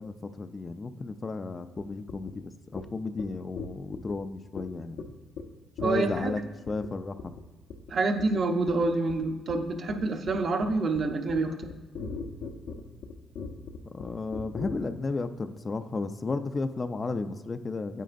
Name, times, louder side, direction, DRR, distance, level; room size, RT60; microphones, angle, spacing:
voice 1, 0.0-5.1 5.8-6.4 6.7-7.2 13.9-18.0, left 3 dB, 30° left, 9 dB, 0.4 m, -33 dB
sound 1, 1.8-1.9 2.1-2.3 2.8-2.9 3.2-3.3 3.6-4.1 4.6-4.7 5.0-5.1 5.4-5.5 5.8-6.3 6.7-6.9 7.2-7.4 7.7-8.4 8.7-14.7, left 5 dB, 85° left, 0.9 m, -39 dB
voice 2, 5.8-6.3 7.9-11.7, right 3 dB, 50° right, 5 dB, 0.8 m, -27 dB
9.1 x 8.2 x 2.5 m, 1.2 s
cardioid pair, 90°, 0 cm